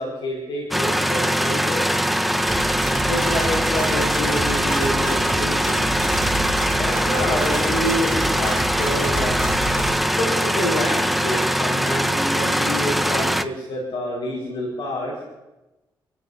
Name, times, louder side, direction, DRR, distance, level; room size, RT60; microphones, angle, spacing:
voice 1, 0.0-1.9 3.0-5.9 6.7-9.3 10.1-15.1, left 1 dB, 75° left, -3 dB, 5.1 m, -28 dB
sound 1, 0.7-13.4, equal, ahead, 1.2 m, -22 dB
sound 2, 2.5-10.0, right 1 dB, 30° right, 3.0 m, -30 dB
27.5 x 15.0 x 2.8 m, 1.0 s
supercardioid pair, 50°, 9 cm